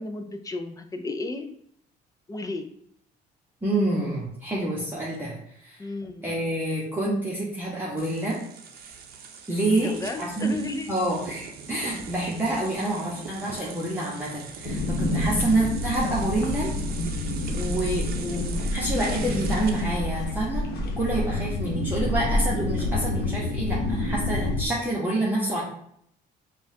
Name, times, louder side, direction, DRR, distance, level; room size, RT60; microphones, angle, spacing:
voice 1, 0.0-1.5 2.3-2.7 5.8-6.3 9.7-10.9, left 3 dB, 20° left, 6 dB, 0.4 m, -33 dB
voice 2, 3.6-5.3 5.6-5.8 6.2-8.4 9.5-10.5 10.9-16.7 17.5-20.6 21.0-25.6, right 1 dB, 10° right, -7 dB, 1.0 m, -27 dB
sound 1, 8.0-20.0, right 6 dB, 65° right, 0.6 m, -41 dB
sound 2, 14.6-24.6, left 2 dB, 75° left, 0.9 m, -28 dB
5.3 x 2.4 x 2.7 m, 0.67 s
cardioid pair, 110°, 17 cm